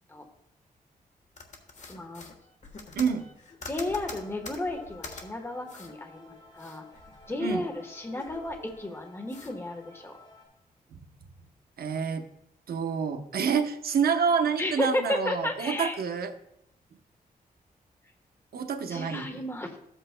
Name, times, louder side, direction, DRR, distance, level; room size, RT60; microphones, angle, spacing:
sound 1, 1.4-5.2 5.7-5.9 6.3-7.6 8.0-8.8 9.3-9.5, left 3 dB, 50° left, 1.3 m, -45 dB
voice 1, 1.9-2.2 3.6-6.8 7.3-10.1 14.6-16.0 18.9-19.8, left 1 dB, 15° left, 4 dB, 1.2 m, -33 dB
voice 2, 3.0-3.3 7.4-7.7 11.8-12.2 12.7-16.3 18.5-19.5, right 6 dB, 80° right, 6 dB, 0.8 m, -28 dB
sound 2, 4.1-10.5, left 2 dB, 30° left, 3.9 m, -54 dB
13.5 x 8.0 x 2.2 m, 0.79 s
wide cardioid pair, 105°, 16 cm